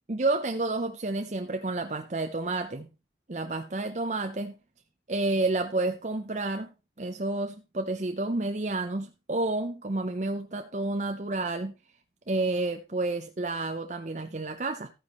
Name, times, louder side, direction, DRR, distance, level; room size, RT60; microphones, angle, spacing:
voice 1, 0.1-2.9 3.3-4.6 5.1-6.7 7.0-11.7 12.3-14.9, right 2 dB, 40° right, 0.7 m, -30 dB
13.5 x 9.6 x 3.0 m
head